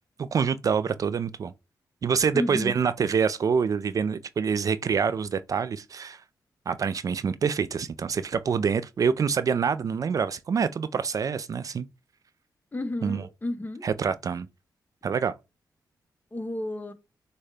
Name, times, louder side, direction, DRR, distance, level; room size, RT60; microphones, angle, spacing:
voice 1, 0.2-1.5 2.0-6.2 6.7-11.9 13.0-13.2 13.8-14.5 15.0-15.3, right 6 dB, 50° right, 0.3 m, -26 dB
voice 2, 2.3-2.8 12.7-13.8 16.3-16.9, left 1 dB, 25° left, 0.9 m, -32 dB
6.4 x 2.2 x 3.3 m
cardioid pair, 85°, 7 cm